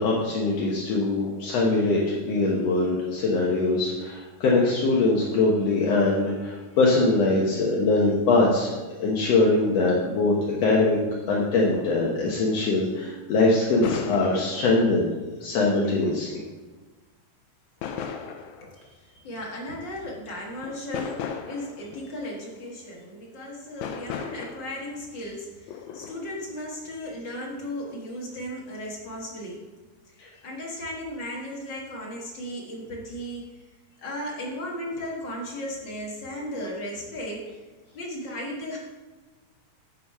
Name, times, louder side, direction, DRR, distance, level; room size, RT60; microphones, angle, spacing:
voice 1, 0.0-8.7 9.0-11.0 11.3-15.1 15.4-16.4 30.2-30.3, left 3 dB, 65° left, -4 dB, 1.6 m, -22 dB
sound 1, 11.7-11.9 13.8-15.0 16.0-16.4 17.8-18.9 20.0-20.1 20.5-22.1 22.7-22.8 23.8-24.9 25.7-26.5, left 7 dB, 85° left, 1.6 m, -36 dB
voice 2, 19.2-29.6 30.4-33.4 34.0-37.5 37.9-38.8, left 1 dB, 45° left, -3 dB, 1.5 m, -35 dB
8.1 x 7.2 x 5.5 m, 1.2 s
omnidirectional pair, 4.3 m